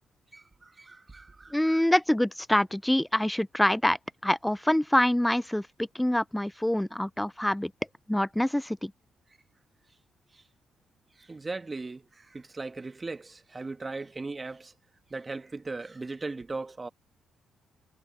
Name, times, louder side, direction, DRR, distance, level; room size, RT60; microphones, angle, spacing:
voice 1, 0.3-1.8 10.3-10.4 11.2-14.7 15.1-16.9, right 3 dB, 25° right, 1.4 m, -38 dB
voice 2, 1.5-4.0 4.2-7.7 8.1-8.9, left 1 dB, 5° left, 0.3 m, -25 dB
cardioid pair, 90°, 0 cm